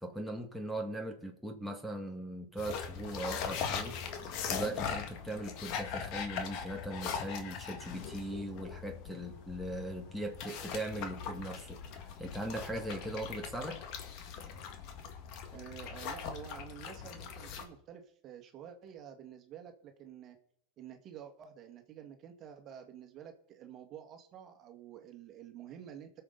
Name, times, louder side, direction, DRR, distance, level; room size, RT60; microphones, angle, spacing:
voice 1, 0.0-4.0 4.5-11.8 12.2-13.8, right 1 dB, ahead, 1.7 m, -39 dB
sound 1, 2.6-17.7, left 7 dB, 50° left, 1.8 m, -40 dB
voice 2, 15.5-20.4 20.8-26.1, right 9 dB, 35° right, 1.8 m, -49 dB
21.0 x 7.0 x 4.0 m
hypercardioid pair, 120°, 0 cm